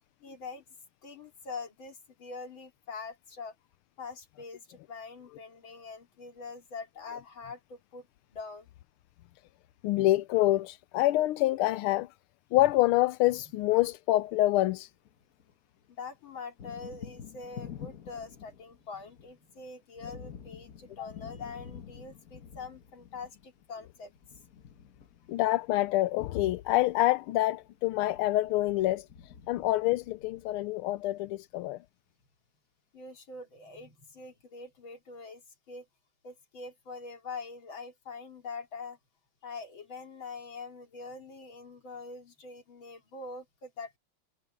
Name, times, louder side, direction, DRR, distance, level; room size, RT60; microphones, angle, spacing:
voice 1, 0.2-0.6 1.0-3.5 4.0-8.1 8.3-8.7 15.9-24.1 32.9-35.9 36.2-39.0 39.4-44.0, left 4 dB, 65° left, 3.6 m, -44 dB
voice 2, 9.8-12.1 12.5-14.9 21.0-21.1 25.3-31.8, left 16 dB, 85° left, 1.5 m, -26 dB
Thunder, 14.3-15.5 15.8-31.1, left 8 dB, 50° left, 1.4 m, -49 dB
omnidirectional pair, 2.3 m